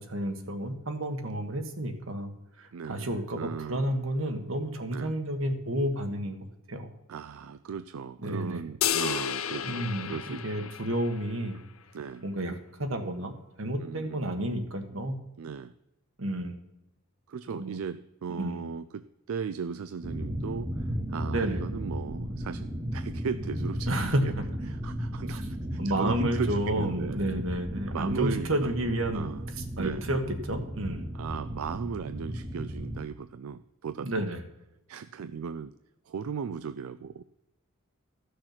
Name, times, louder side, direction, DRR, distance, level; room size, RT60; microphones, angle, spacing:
voice 1, 0.0-2.3 2.6-6.4 6.7-6.9 8.2-8.6 9.6-11.6 12.2-15.2 16.2-16.5 17.5-17.8 18.4-18.7 21.3-21.6 23.9-24.4 25.3-25.4 25.8-29.3 29.8-31.1 34.0-34.4, right 1 dB, 70° right, 6 dB, 1.5 m, -31 dB
voice 2, 2.7-4.0 4.9-5.2 7.1-10.7 11.9-12.2 13.8-14.2 15.4-15.7 17.3-23.9 24.7-25.5 25.7-27.2 27.9-28.7 29.1-29.4 29.8-30.1 31.1-34.3 34.9-35.7 36.1-37.2, right 6 dB, 90° right, 12 dB, 0.4 m, -37 dB
sound 1, 8.8-11.4, left 9 dB, 75° left, 0.6 m, -32 dB
sound 2, 20.0-33.0, equal, 15° right, 0.9 m, -35 dB
13.5 x 6.5 x 5.9 m, 0.91 s
head